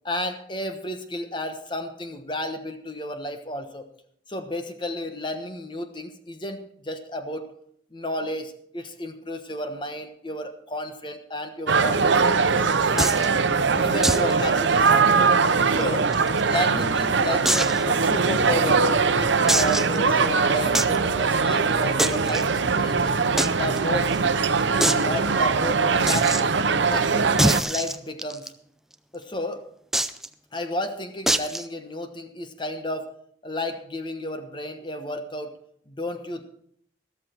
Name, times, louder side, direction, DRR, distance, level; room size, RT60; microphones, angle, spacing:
voice 1, 0.0-3.8 4.3-7.5 7.9-12.6 12.9-13.1 13.7-15.3 15.7-16.1 16.4-18.8 19.1-23.2 23.5-24.1 24.7-26.3 26.7-27.3 27.7-28.5 29.1-29.6 30.5-33.1 33.4-35.5 35.9-36.4, left 1 dB, 25° left, 7 dB, 1.1 m, -32 dB
sound 1, 11.7-27.6, right 5 dB, 80° right, 0.7 m, -21 dB
sound 2, 13.0-13.3 14.0-14.3 14.6-14.7 15.1-15.2 15.8-16.6 17.4-17.8 18.4-18.5 19.5-20.0 20.7-21.0 22.0-22.4 23.4-23.5 23.8-23.9 24.1-24.2 24.8-25.0 26.1-26.4 27.4-28.5 29.9-30.3 31.3-31.6, right 1 dB, ahead, 0.4 m, -24 dB
13.5 x 13.0 x 4.4 m, 0.67 s
head